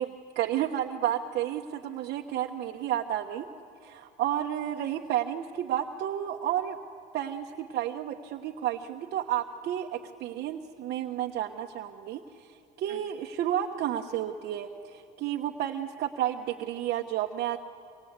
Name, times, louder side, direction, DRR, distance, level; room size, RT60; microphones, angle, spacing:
voice 1, 0.0-3.5 3.8-6.8 7.1-12.5 12.8-17.6, right 11 dB, 70° right, 1 dB, 1.2 m, -31 dB
27.0 x 25.0 x 8.2 m, 2.6 s
cardioid pair, 110°, 17 cm